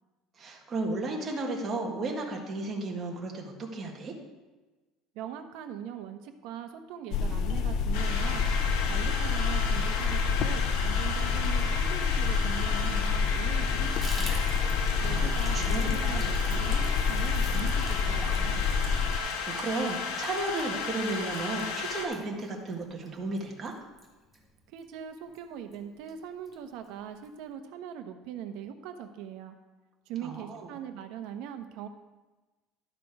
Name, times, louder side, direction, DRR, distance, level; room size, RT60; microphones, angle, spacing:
voice 1, 0.4-4.1 15.0-16.3 19.2-23.7 30.2-30.7, right 2 dB, 25° right, 0 dB, 1.8 m, -34 dB
voice 2, 5.1-8.5 8.8-14.5 15.0-18.6 24.7-29.5 30.1-31.9, right 9 dB, 70° right, 7 dB, 1.0 m, -41 dB
sound 1, 7.1-19.2, left 5 dB, 50° left, 0.5 m, -28 dB
sound 2, 7.9-22.1, left 5 dB, 85° left, 1.4 m, -34 dB
Water tap faucet / Bathtub (filling or washing), 14.0-24.9 25.3-25.4 25.7-25.8 26.1-26.6 26.8-26.9 27.2-27.3, equal, ahead, 1.5 m, -47 dB
12.0 x 6.0 x 4.8 m, 1.2 s
cardioid pair, 145°, 0 cm